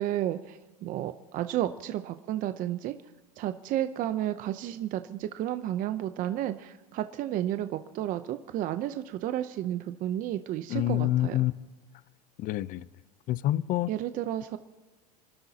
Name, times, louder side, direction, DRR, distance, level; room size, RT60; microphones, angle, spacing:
voice 1, 0.0-2.9 3.4-11.4 13.9-14.6, right 12 dB, 45° right, 10 dB, 0.7 m, -32 dB
voice 2, 10.7-11.5 12.4-12.8 13.3-13.9, left 14 dB, 45° left, 18 dB, 0.6 m, -27 dB
27.5 x 12.5 x 2.9 m, 1.2 s
supercardioid pair, 110°, 20 cm